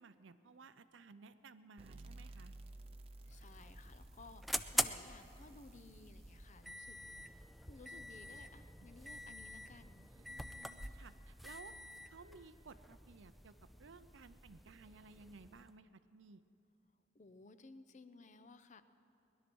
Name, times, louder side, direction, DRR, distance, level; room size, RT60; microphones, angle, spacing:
voice 1, 0.0-2.5 10.1-11.7 12.1-16.4, right 4 dB, 80° right, 12 dB, 0.6 m, -57 dB
sound 1, 1.8-9.0, right 2 dB, 30° right, 0.7 m, -57 dB
voice 2, 3.2-7.0 7.7-10.1 17.1-18.8, left 3 dB, 40° left, 11 dB, 0.7 m, -58 dB
sound 2, 3.3-15.7, equal, ahead, 0.4 m, -45 dB
20.0 x 11.5 x 6.2 m, 2.8 s
head